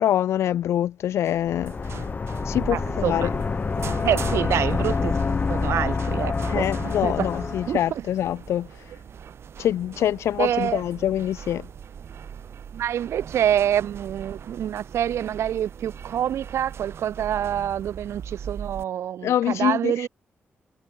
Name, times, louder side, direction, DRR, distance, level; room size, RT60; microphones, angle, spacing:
voice 1, 0.0-1.7 2.4-3.3 6.5-8.9 9.6-11.7 19.2-20.1, left 11 dB, 85° left, 0.3 m, -25 dB
sound 1, 1.3-18.8, right 8 dB, 65° right, 3.0 m, -40 dB
sound 2, 1.5-7.9, left 4 dB, 40° left, 1.7 m, -27 dB
voice 2, 2.7-3.3 4.0-5.2 5.5-7.3 7.7-8.0 10.4-10.8 12.7-20.1, right 10 dB, 85° right, 0.8 m, -26 dB
cardioid pair, 90°, 5 cm